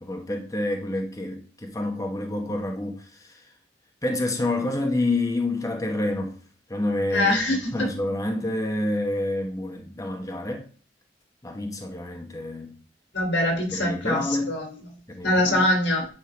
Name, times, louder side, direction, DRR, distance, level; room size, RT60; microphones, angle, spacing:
voice 1, 0.0-3.4 4.0-6.4 6.7-7.4 7.7-10.7 11.4-12.8 13.7-14.5 15.1-15.7, left 1 dB, 20° left, 1.0 m, -28 dB
voice 2, 7.1-7.9 13.1-14.2 14.5-14.7 15.2-16.1, left 1 dB, 85° left, 3.3 m, -23 dB
9.5 x 3.8 x 5.0 m
head